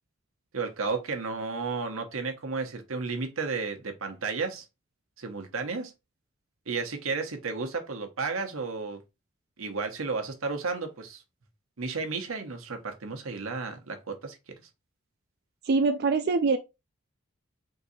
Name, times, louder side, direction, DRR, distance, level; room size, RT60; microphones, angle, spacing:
voice 1, 0.5-4.6 5.2-5.9 6.7-9.0 9.6-11.2 11.8-14.4, right 4 dB, 90° right, 1.0 m, -33 dB
voice 2, 15.6-16.6, right 4 dB, 50° right, 0.3 m, -23 dB
3.8 x 2.7 x 4.0 m
head